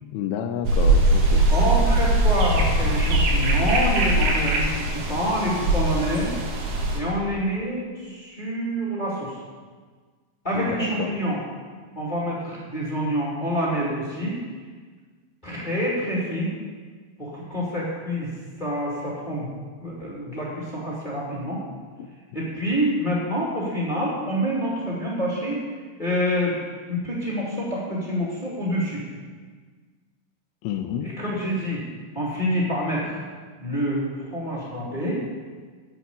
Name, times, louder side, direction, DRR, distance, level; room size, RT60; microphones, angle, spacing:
voice 1, 0.0-1.4 10.5-11.2 22.0-22.1 30.6-31.1, left 9 dB, 85° left, 4 dB, 2.6 m, -30 dB
sound 1, 0.6-7.0, right 1 dB, 80° right, 3.6 m, -21 dB
voice 2, 1.5-6.3 6.9-9.4 10.4-11.4 12.0-14.4 15.4-16.5 17.2-18.3 18.6-19.5 19.8-21.6 22.3-25.6 26.0-26.6 26.9-29.0 31.0-31.8 32.1-33.2 33.6-34.0 34.3-35.2, equal, 15° left, -6 dB, 1.9 m, -27 dB
11.0 x 6.9 x 8.6 m, 1.5 s
omnidirectional pair, 4.5 m